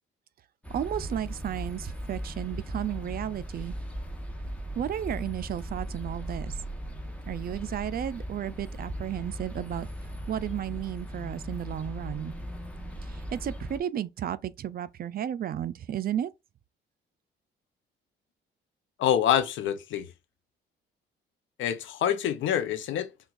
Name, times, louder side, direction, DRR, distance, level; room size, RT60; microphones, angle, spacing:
sound 1, 0.6-13.8, equal, 5° left, 0.9 m, -38 dB
voice 1, 0.7-3.7 4.8-6.5 7.3-9.9 10.3-12.3 13.3-16.3, right 10 dB, 50° right, 0.4 m, -33 dB
voice 2, 19.0-20.1 21.6-23.1, left 10 dB, 75° left, 0.6 m, -26 dB
5.8 x 2.3 x 2.4 m
cardioid pair, 90°, 20 cm